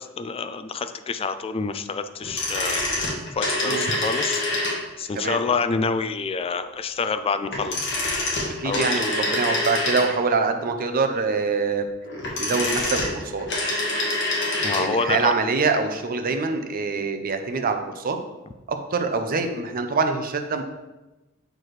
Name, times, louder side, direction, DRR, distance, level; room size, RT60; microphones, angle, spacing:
voice 1, 0.0-2.8 3.4-4.4 5.0-8.0 8.6-9.0 14.6-15.3, left 4 dB, 25° left, 9 dB, 0.3 m, -27 dB
sound 1, 2.2-5.1 7.5-10.4 12.0-14.9 15.1-15.2, left 2 dB, 55° left, 1.5 m, -26 dB
voice 2, 8.6-11.8 12.4-13.5 14.8-18.2 18.7-20.6, right 4 dB, 40° right, 6 dB, 0.6 m, -24 dB
7.6 x 4.5 x 3.2 m, 1.1 s
head